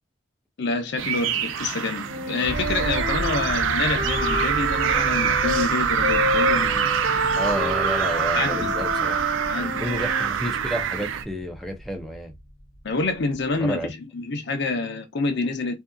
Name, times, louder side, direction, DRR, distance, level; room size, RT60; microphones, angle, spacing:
voice 1, 0.6-6.9 8.3-8.7 9.5-9.7 12.8-15.8, left 3 dB, 65° left, 0.6 m, -27 dB
sound 1, 1.0-11.2, right 8 dB, 85° right, 0.4 m, -25 dB
Wind instrument woodwind instrument, 2.1-5.7 6.0-10.3, equal, 45° right, 0.7 m, -29 dB
sound 2, 2.4-13.8, equal, 80° left, 1.0 m, -36 dB
voice 2, 7.4-9.2 9.6-12.3 13.6-13.9, equal, ahead, 0.5 m, -30 dB
2.6 x 2.4 x 2.2 m
head